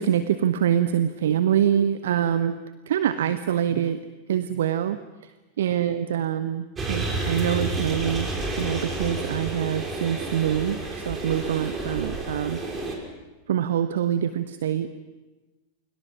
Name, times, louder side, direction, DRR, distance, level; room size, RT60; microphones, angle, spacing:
voice 1, 0.0-2.6 2.9-4.0 4.3-5.3 5.6-8.3 8.6-12.6 13.5-14.9, right 10 dB, 60° right, 12 dB, 0.9 m, -25 dB
sound 1, 6.8-13.0, right 2 dB, 20° right, 5.2 m, -30 dB
29.0 x 23.5 x 6.0 m, 1.2 s
figure-of-eight pair, 90°, 0 cm